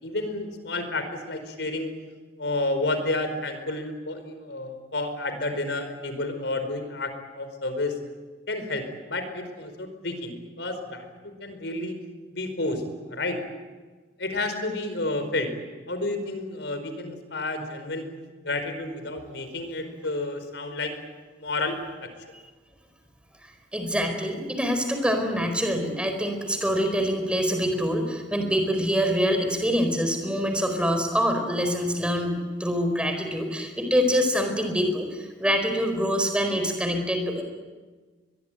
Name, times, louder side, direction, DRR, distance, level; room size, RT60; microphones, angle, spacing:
voice 1, 0.0-1.9 2.4-8.0 8.5-11.9 12.3-13.4 14.2-15.6 15.9-18.1 18.4-21.0 21.4-22.1, left 2 dB, 90° left, 8 dB, 4.8 m, -30 dB
voice 2, 23.7-37.4, equal, 5° right, 5 dB, 4.5 m, -25 dB
22.5 x 22.0 x 9.3 m, 1.3 s
head